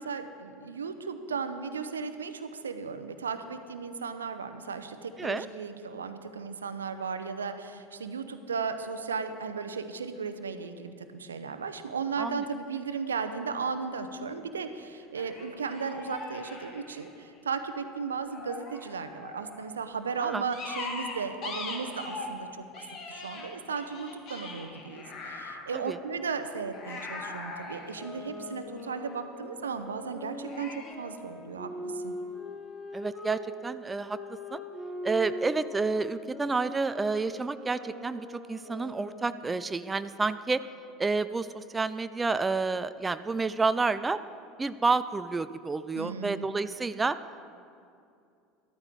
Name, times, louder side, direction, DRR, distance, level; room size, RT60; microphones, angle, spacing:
voice 1, 0.0-22.5 22.8-32.1 46.0-46.5, right 5 dB, 80° right, 9 dB, 0.7 m, -35 dB
sound 1, 12.9-13.0 15.2-17.4 18.3-19.7 20.5-22.4 22.7-25.7 26.7-29.0 30.5-30.9, left 3 dB, 45° left, 1.9 m, -41 dB
sound 2, 27.8-33.4 34.0-39.6, left 1 dB, 20° left, 3.1 m, -41 dB
voice 2, 32.9-34.2 34.5-34.6 35.0-40.6 41.0-44.2 44.6-47.2, right 4 dB, 15° right, 13 dB, 0.4 m, -29 dB
13.5 x 13.0 x 3.6 m, 2.5 s
figure-of-eight pair, 75°, 0 cm